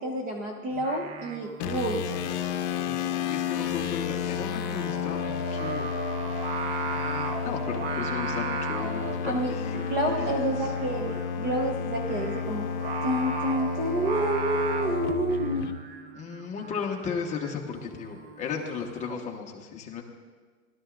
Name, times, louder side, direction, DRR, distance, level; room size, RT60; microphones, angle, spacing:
voice 1, 0.0-2.1 9.2-12.7 13.0-15.8, right 1 dB, 20° right, 2 dB, 0.7 m, -29 dB
Singing, 0.7-19.2, right 5 dB, 45° right, 1.0 m, -37 dB
sound 1, 1.6-15.7, left 8 dB, 50° left, 0.9 m, -32 dB
voice 2, 2.8-5.9 6.8-9.8 10.2-10.7 16.1-20.0, left 6 dB, 15° left, 0 dB, 1.1 m, -35 dB
18.0 x 12.5 x 2.5 m, 1.5 s
hypercardioid pair, 140°, 43 cm